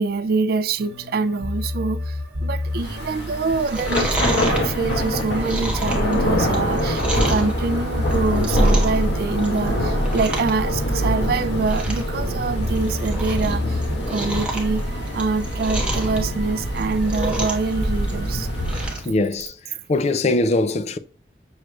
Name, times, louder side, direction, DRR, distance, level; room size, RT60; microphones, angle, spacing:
voice 1, 0.0-13.8 14.1-14.8 15.1-18.5, right 4 dB, 55° right, 0.3 m, -25 dB
sound 1, 0.8-19.0, left 1 dB, 85° right, 0.8 m, -33 dB
Thunder / Rain, 2.7-19.1, equal, 70° left, 1.2 m, -24 dB
Chewing mastication, 3.5-7.5 8.0-9.0 9.3-9.7 10.0-10.5 10.8-10.9 11.3-11.4 11.6-12.1 12.5-13.5 13.8-16.2 16.7-17.7 18.0-19.1 19.4-19.5, right 1 dB, 5° right, 1.1 m, -29 dB
voice 2, 19.0-19.5 19.9-21.0, left 2 dB, 35° left, 0.4 m, -21 dB
6.3 x 3.2 x 2.3 m
head